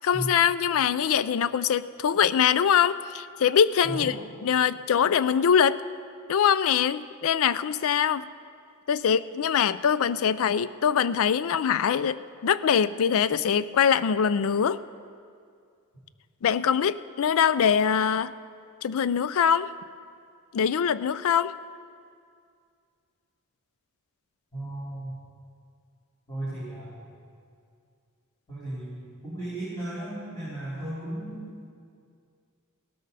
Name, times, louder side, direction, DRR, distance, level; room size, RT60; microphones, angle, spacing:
voice 1, 0.0-4.2 4.4-5.8 6.3-8.3 8.9-14.8 16.4-18.3 18.8-19.7 20.5-21.5, left 7 dB, 65° left, 16 dB, 0.4 m, -23 dB
voice 2, 24.5-25.1 26.3-26.9 28.5-31.4, right 1 dB, 20° left, -12 dB, 4.0 m, -35 dB
17.5 x 12.5 x 4.1 m, 2.3 s
head